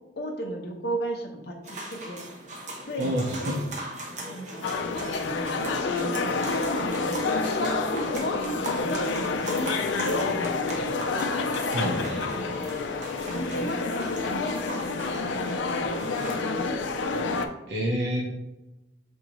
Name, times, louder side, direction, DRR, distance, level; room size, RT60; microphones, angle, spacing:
voice 1, 0.2-2.3 2.9-3.6 4.2-4.8 5.5-8.9 9.2-10.4 11.1-11.3 12.3-12.8 13.3-15.5 16.0-16.6, equal, 60° left, 1 dB, 0.8 m, -35 dB
sound 1, 1.6-16.5, right 1 dB, 40° right, 0.8 m, -39 dB
voice 2, 3.0-3.6 11.7-12.3 17.7-18.2, equal, 80° right, -3 dB, 0.7 m, -28 dB
sound 2, 4.6-17.5, left 3 dB, 90° left, 0.4 m, -28 dB
6.1 x 2.6 x 2.9 m, 1.0 s
head